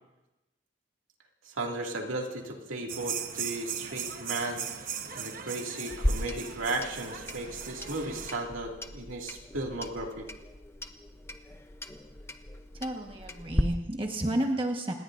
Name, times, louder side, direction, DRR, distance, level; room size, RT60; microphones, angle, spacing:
voice 1, 1.5-4.6 5.1-10.3, right 2 dB, 85° right, 0 dB, 2.4 m, -35 dB
sound 1, 2.9-8.4, right 7 dB, 45° right, 1.0 m, -38 dB
Clock, 5.9-13.6, left 1 dB, 15° left, 0.7 m, -36 dB
voice 2, 12.7-14.9, right 1 dB, 25° right, 2 dB, 1.4 m, -31 dB
28.0 x 19.5 x 2.6 m, 1.0 s
head